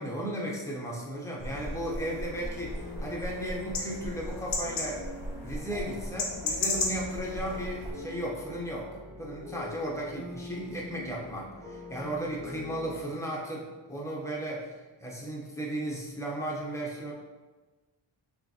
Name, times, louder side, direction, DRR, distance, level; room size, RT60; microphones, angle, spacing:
voice 1, 0.0-5.1 5.4-14.7 15.0-17.1, right 1 dB, 5° left, -4 dB, 0.7 m, -35 dB
sound 1, 1.4-7.9, left 2 dB, 55° left, 0.9 m, -35 dB
sound 2, 2.0-13.0, left 1 dB, 80° right, 1.1 m, -44 dB
5.7 x 2.4 x 2.7 m, 1.3 s
wide cardioid pair, 120°, 49 cm